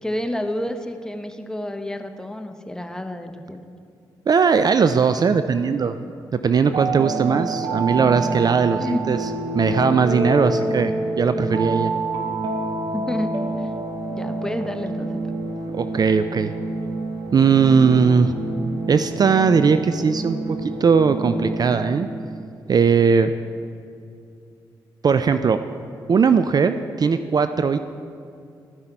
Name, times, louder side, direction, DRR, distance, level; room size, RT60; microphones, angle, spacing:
voice 1, 0.0-3.6 8.8-9.0 12.9-13.3 13.6-13.7 14.1-15.2, left 1 dB, 5° left, 6 dB, 0.8 m, -29 dB
voice 2, 4.3-6.0 6.3-9.2 9.5-11.9 15.7-16.5 17.3-18.3 18.9-22.1 22.7-23.3 25.0-25.6 26.1-27.8, right 5 dB, 45° right, 10 dB, 0.3 m, -19 dB
sound 1, 6.6-22.3, right 2 dB, 70° right, 1.2 m, -27 dB
12.5 x 5.6 x 4.5 m, 2.4 s
supercardioid pair, 45°, 9 cm